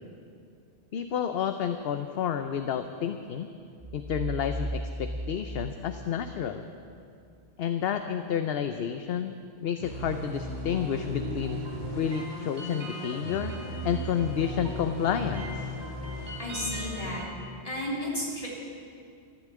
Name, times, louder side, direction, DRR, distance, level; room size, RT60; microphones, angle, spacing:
voice 1, 0.9-3.5 3.9-6.6 7.6-9.4 9.6-11.6 11.9-13.6 13.8-15.7, left 8 dB, 65° left, 8 dB, 0.9 m, -30 dB
sound 1, 3.8-6.6, right 1 dB, 25° right, 5.2 m, -36 dB
sound 2, 9.8-17.2, equal, 85° right, 3.6 m, -36 dB
voice 2, 16.4-17.3 17.6-18.5, left 1 dB, 30° left, -5 dB, 3.5 m, -33 dB
14.0 x 11.5 x 8.4 m, 2.4 s
omnidirectional pair, 1.1 m